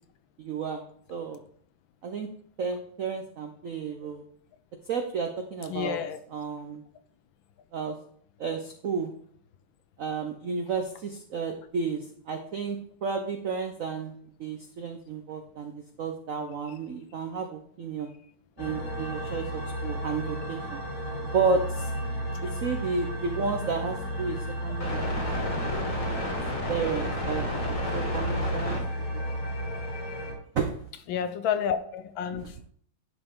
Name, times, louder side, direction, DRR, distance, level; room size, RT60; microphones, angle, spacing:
voice 1, 0.4-0.8 1.1-1.4 2.0-2.3 2.6-4.2 4.9-6.0 6.3-6.8 7.7-8.0 8.4-9.1 10.0-14.1 14.4-15.7 16.0-18.1 18.6-20.8 21.3-21.9 22.4-25.5 26.0-26.2 26.7-29.2 30.5-30.7 32.3-32.4, right 5 dB, 85° right, 5 dB, 0.7 m, -32 dB
voice 2, 5.7-6.2 31.1-32.7, left 8 dB, 70° left, 10 dB, 1.3 m, -30 dB
sound 1, 18.6-30.3, equal, 40° left, 2.2 m, -31 dB
10.5 x 5.5 x 3.6 m, 0.62 s
omnidirectional pair, 2.4 m